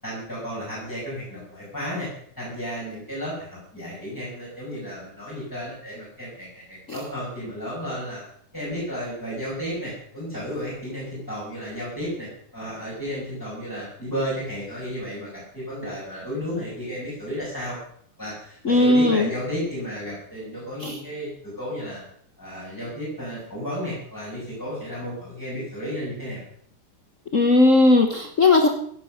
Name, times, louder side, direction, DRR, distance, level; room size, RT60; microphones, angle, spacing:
voice 1, 0.0-2.1 2.4-8.2 8.5-17.8 18.2-22.0 22.4-26.4, equal, 5° left, -8 dB, 6.8 m, -33 dB
voice 2, 18.6-19.3 20.8-21.0 27.3-28.7, left 2 dB, 70° left, 4 dB, 0.7 m, -17 dB
16.0 x 10.5 x 6.5 m, 0.64 s
omnidirectional pair, 3.5 m